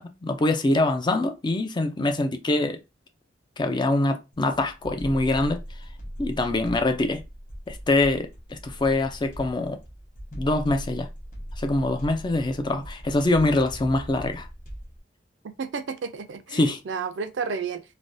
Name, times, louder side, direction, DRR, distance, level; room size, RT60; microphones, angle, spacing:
voice 1, 0.0-2.8 3.6-5.9 6.2-7.2 7.7-9.8 10.3-11.1 11.5-14.5 16.5-16.8, left 2 dB, 25° left, 0.4 m, -24 dB
sound 1, 4.3-15.0, equal, 45° left, 1.0 m, -39 dB
voice 2, 15.6-16.6 16.9-17.8, right 5 dB, 70° right, 0.4 m, -31 dB
3.3 x 2.2 x 2.5 m
head